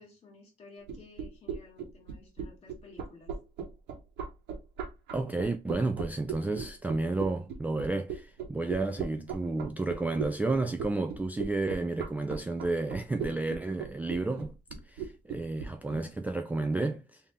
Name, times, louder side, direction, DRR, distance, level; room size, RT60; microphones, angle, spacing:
voice 1, 0.0-3.3, left 3 dB, 35° left, 2.0 m, -54 dB
sound 1, 0.8-16.0, right 6 dB, 85° right, 1.0 m, -37 dB
voice 2, 5.1-14.6 14.9-17.2, right 2 dB, 10° right, 0.3 m, -31 dB
3.6 x 2.7 x 3.5 m
cardioid pair, 110°, 17 cm